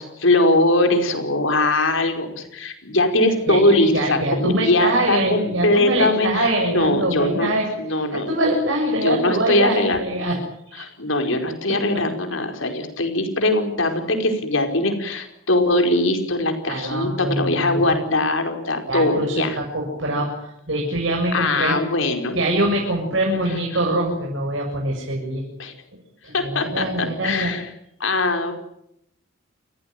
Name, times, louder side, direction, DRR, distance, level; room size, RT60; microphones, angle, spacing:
voice 1, 0.0-7.5 7.8-8.3 9.0-10.0 10.8-19.6 21.3-22.4 25.6-25.7 26.3-27.7 28.0-28.5, left 2 dB, 70° left, 5 dB, 5.1 m, -21 dB
voice 2, 3.5-10.4 10.7-10.8 16.7-18.0 18.9-21.8 22.3-25.4 26.2-27.5, right 1 dB, 65° right, -1 dB, 7.4 m, -24 dB
29.5 x 15.5 x 9.2 m, 0.78 s
head